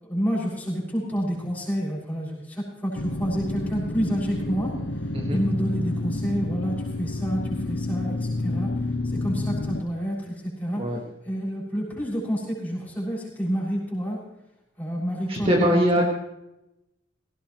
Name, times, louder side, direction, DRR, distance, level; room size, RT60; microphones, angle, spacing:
voice 1, 0.0-4.8 5.3-8.7 9.2-10.3 10.6-10.8 11.2-14.2 14.8-16.1, equal, 10° left, -5 dB, 6.6 m, -28 dB
sound 1, 2.9-9.8, left 2 dB, 65° left, 1.0 m, -29 dB
voice 2, 15.3-16.1, equal, 30° right, -1 dB, 1.9 m, -22 dB
18.5 x 17.5 x 3.2 m, 0.91 s
head